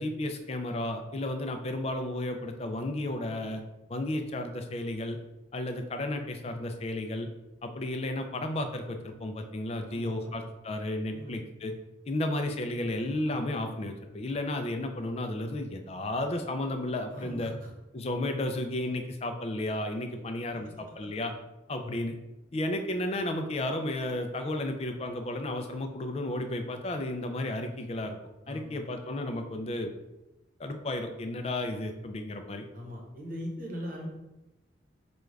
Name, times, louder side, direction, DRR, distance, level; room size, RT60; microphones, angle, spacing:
voice 1, 0.0-3.6 3.9-5.2 5.5-7.3 7.6-11.7 12.1-17.5 17.9-21.3 21.7-22.2 22.5-28.2 28.5-29.9 30.6-32.6, left 1 dB, 35° left, 6 dB, 0.4 m, -33 dB
voice 2, 9.9-10.4 11.1-11.4 17.1-17.7 20.0-20.2 20.6-20.7 21.0-21.1 21.7-21.9 28.4-28.8 32.7-34.1, equal, 45° right, 0 dB, 0.9 m, -41 dB
5.0 x 2.3 x 3.2 m, 0.97 s
head